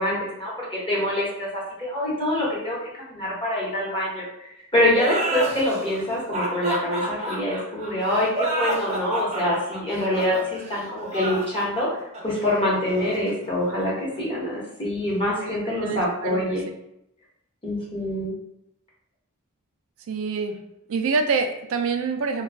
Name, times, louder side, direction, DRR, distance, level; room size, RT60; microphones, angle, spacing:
voice 1, 0.0-4.2 4.7-11.9 12.2-16.6 17.6-18.3, left 1 dB, 25° left, -7 dB, 1.0 m, -25 dB
sound 1, 4.9-14.2, right 2 dB, 30° right, 0.6 m, -30 dB
voice 2, 15.8-16.4 20.1-20.6 20.9-22.4, right 4 dB, 65° right, 6 dB, 0.4 m, -26 dB
2.3 x 2.3 x 3.4 m, 0.82 s
head